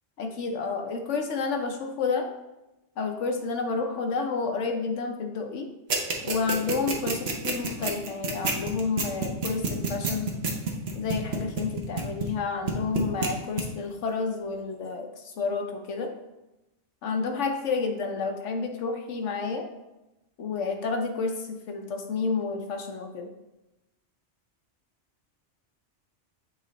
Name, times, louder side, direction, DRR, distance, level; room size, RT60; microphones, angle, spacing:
voice 1, 0.2-2.3 3.0-5.7 6.2-10.3 10.9-16.1 17.0-19.6 20.4-23.3, left 4 dB, 85° left, 4 dB, 1.1 m, -30 dB
sound 1, 5.9-12.4 12.7-13.3 13.6-13.7, right 4 dB, 60° right, 1.1 m, -27 dB
7.3 x 3.2 x 3.9 m, 0.96 s
omnidirectional pair, 1.2 m